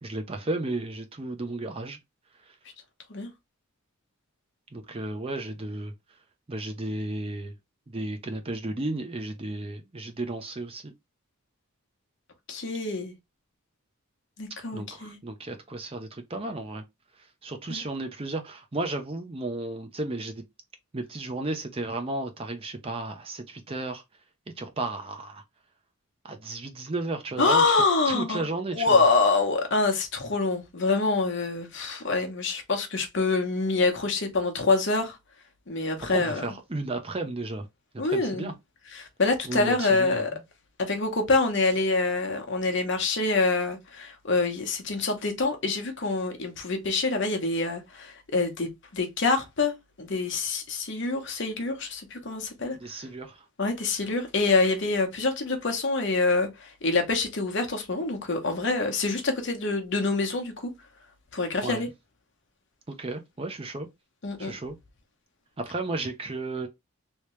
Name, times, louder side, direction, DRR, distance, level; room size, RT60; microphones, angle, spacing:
voice 1, 0.0-2.0 2.4-2.6 4.7-5.9 6.5-7.5 7.9-10.9 14.7-16.8 17.2-20.4 20.9-24.0 24.6-25.4 26.2-29.0 36.1-37.6 37.9-38.5 39.4-40.3 52.8-53.4 61.6-61.9 62.9-63.9 64.4-64.8 65.6-66.7, right 2 dB, 25° right, 0.5 m, -33 dB
voice 2, 12.5-13.1 14.4-15.2 17.7-17.8 27.4-28.4 28.7-35.2 35.7-36.4 38.0-38.5 38.9-40.3 40.8-52.8 53.6-60.5 61.3-61.9 64.2-64.5, left 3 dB, 55° left, 1.0 m, -26 dB
3.2 x 2.8 x 3.1 m
head